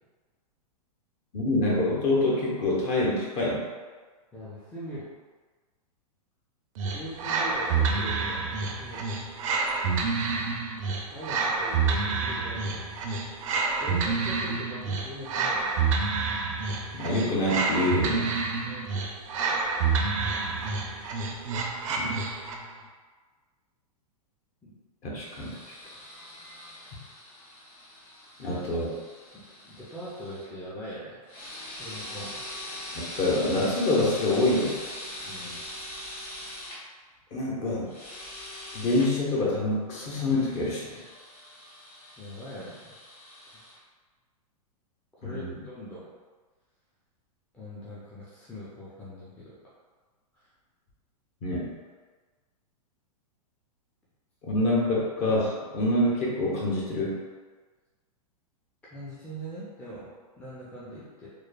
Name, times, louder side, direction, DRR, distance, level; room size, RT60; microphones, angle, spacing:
voice 1, 1.3-3.6 16.9-18.3 21.9-22.1 25.0-25.6 28.4-28.9 33.1-34.8 37.3-37.9 38.7-41.0 45.2-45.6 51.4-51.7 54.4-57.2, left 2 dB, 35° left, -5 dB, 0.8 m, -26 dB
voice 2, 4.3-5.0 6.9-9.0 11.1-12.9 13.8-15.7 18.6-19.0 24.6-24.7 25.1-25.2 28.3-28.8 29.3-31.2 31.8-32.3 35.2-35.6 41.5-41.8 42.2-43.0 45.2-46.1 47.5-49.6 50.3-50.5 58.9-61.3, equal, 5° left, -9 dB, 0.5 m, -41 dB
sound 1, 6.8-22.7, right 4 dB, 60° right, 0.4 m, -28 dB
sound 2, 25.2-30.5 31.2-36.8 37.9-39.1 40.1-43.8, left 1 dB, 75° left, 1.3 m, -42 dB
3.1 x 2.1 x 2.2 m, 1.4 s
hypercardioid pair, 120°, 20 cm